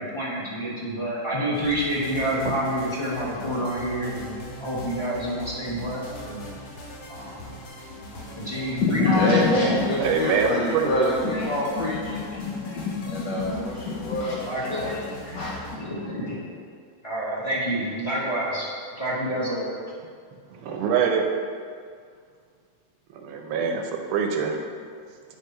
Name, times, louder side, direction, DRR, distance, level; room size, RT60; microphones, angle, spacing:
voice 1, 0.0-6.4 7.1-7.5 8.0-9.0 14.4-14.9 15.8-16.4 17.0-18.7 19.0-19.8, right 1 dB, 15° left, -7 dB, 1.2 m, -28 dB
sound 1, 1.5-15.8, left 2 dB, 90° left, 2.3 m, -41 dB
voice 2, 8.8-16.2, left 2 dB, 65° left, -4 dB, 1.3 m, -25 dB
voice 3, 10.0-11.1 20.5-21.2 23.1-24.6, right 6 dB, 75° right, 3 dB, 1.5 m, -25 dB
9.5 x 3.3 x 5.5 m, 2.1 s
omnidirectional pair, 2.3 m